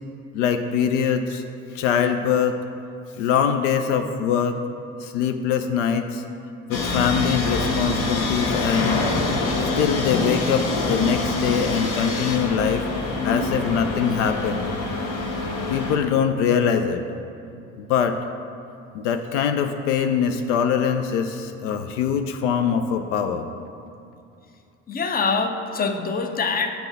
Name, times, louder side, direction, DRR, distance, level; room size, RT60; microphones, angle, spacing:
voice 1, 0.3-1.4 1.7-2.5 3.2-4.6 5.0-6.2 6.7-9.1 9.8-14.7 15.7-17.0 17.8-18.2 18.9-23.5, left 7 dB, 70° left, 7 dB, 0.5 m, -23 dB
sound 1, 6.7-16.0, left 2 dB, 50° left, 1.1 m, -25 dB
voice 2, 24.9-26.7, left 4 dB, 25° left, 5 dB, 0.6 m, -24 dB
7.0 x 3.8 x 6.0 m, 2.6 s
figure-of-eight pair, 55°, 38 cm